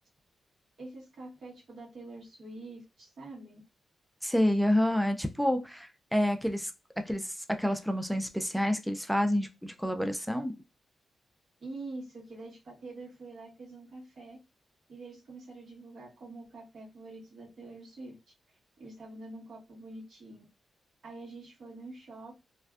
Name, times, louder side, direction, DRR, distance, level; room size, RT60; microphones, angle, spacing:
voice 1, 0.8-3.6 11.6-14.4 14.9-18.1 18.8-20.4 21.0-22.4, right 2 dB, 70° right, -4 dB, 1.2 m, -46 dB
voice 2, 4.2-6.7 7.1-10.5, left 1 dB, ahead, 6 dB, 0.3 m, -28 dB
2.5 x 2.1 x 2.3 m, 0.27 s
cardioid pair, 100°, 0 cm